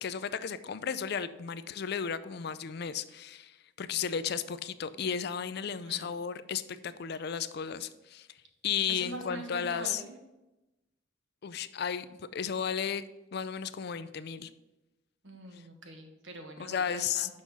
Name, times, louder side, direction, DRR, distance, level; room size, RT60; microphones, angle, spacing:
voice 1, 0.0-8.3 8.6-10.0 11.4-12.1 12.3-13.0 13.3-14.5 15.5-15.6 16.6-17.3, left 7 dB, 55° left, 14 dB, 0.4 m, -34 dB
voice 2, 8.9-10.1 15.2-17.4, right 1 dB, 70° right, 4 dB, 1.4 m, -43 dB
6.2 x 5.5 x 6.1 m, 1.0 s
head